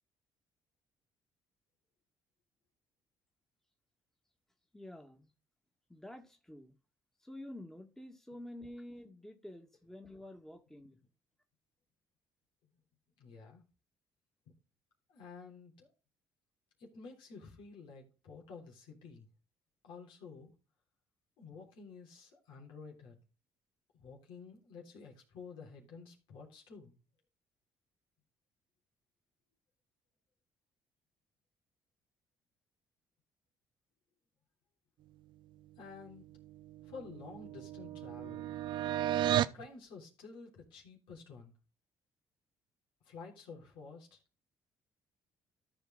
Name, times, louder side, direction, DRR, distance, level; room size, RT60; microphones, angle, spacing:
voice 1, 4.7-5.3 5.9-6.8 7.2-11.0, left 1 dB, 5° left, 1.8 m, -49 dB
voice 2, 13.2-13.6 15.1-15.9 16.8-19.3 19.8-20.5 21.4-23.2 23.9-26.9 35.8-36.3 36.8-38.5 39.5-41.5 43.0-44.2, left 5 dB, 80° left, 3.5 m, -51 dB
sound 1, 36.4-39.6, right 12 dB, 70° right, 0.6 m, -34 dB
13.5 x 5.1 x 3.9 m
supercardioid pair, 80°, 8 cm